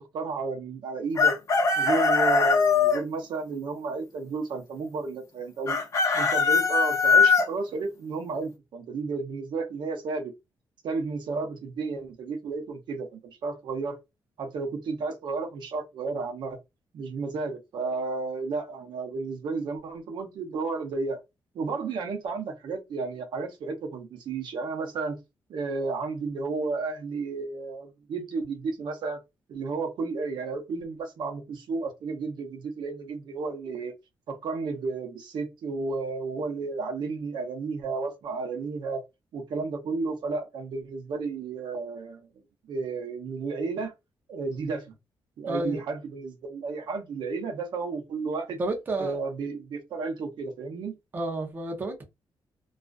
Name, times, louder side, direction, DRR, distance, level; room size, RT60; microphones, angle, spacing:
voice 1, 0.0-1.4 1.8-5.8 6.1-10.3 10.8-14.0 14.4-16.6 16.9-21.2 21.5-25.2 25.5-29.2 29.5-33.9 34.3-39.0 39.3-42.3 42.7-43.9 44.3-44.9 45.4-48.6 49.0-50.9, right 4 dB, 65° right, 0.6 m, -32 dB
Chicken rooster, 1.2-3.0 5.7-7.5, left 4 dB, 40° left, 0.6 m, -21 dB
voice 2, 45.5-45.8 48.6-49.2 51.1-52.0, right 2 dB, 25° right, 0.5 m, -30 dB
2.4 x 2.3 x 2.2 m
wide cardioid pair, 165°, 8 cm